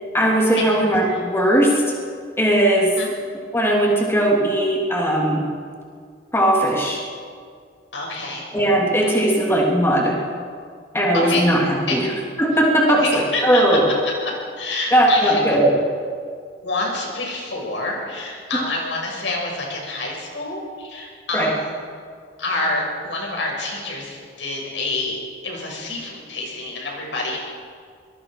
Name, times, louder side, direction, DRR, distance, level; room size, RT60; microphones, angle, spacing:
voice 1, 0.1-1.7 2.4-2.9 3.5-5.4 6.3-7.0 8.5-10.1 10.9-12.1 12.4-13.9 14.9-15.8 21.3-21.5, right 1 dB, 15° left, -2 dB, 3.4 m, -18 dB
voice 2, 7.9-8.4 11.1-11.4 11.9-12.1 12.9-13.6 14.2-15.4 16.6-21.7 22.4-27.4, left 2 dB, 85° left, -1 dB, 6.3 m, -27 dB
24.5 x 21.5 x 5.1 m, 2.1 s
head